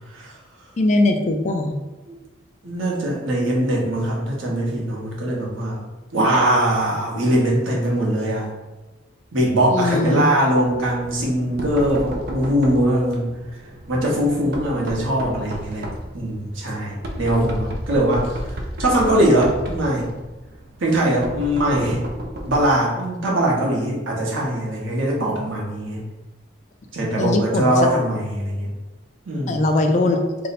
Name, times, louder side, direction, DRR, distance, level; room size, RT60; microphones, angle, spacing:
voice 1, 0.8-1.7 9.7-10.2 27.2-27.7 29.5-30.2, left 2 dB, 40° left, 4 dB, 0.3 m, -20 dB
voice 2, 2.6-5.8 6.1-8.5 9.3-13.3 13.9-15.9 16.1-18.5 18.8-20.1 20.8-22.1 22.4-26.0 26.9-28.7 29.3-29.7, right 1 dB, 90° right, -2 dB, 0.8 m, -21 dB
Knock, 10.6-22.8, right 1 dB, 50° right, 0.4 m, -34 dB
2.6 x 2.1 x 4.0 m, 1.1 s
head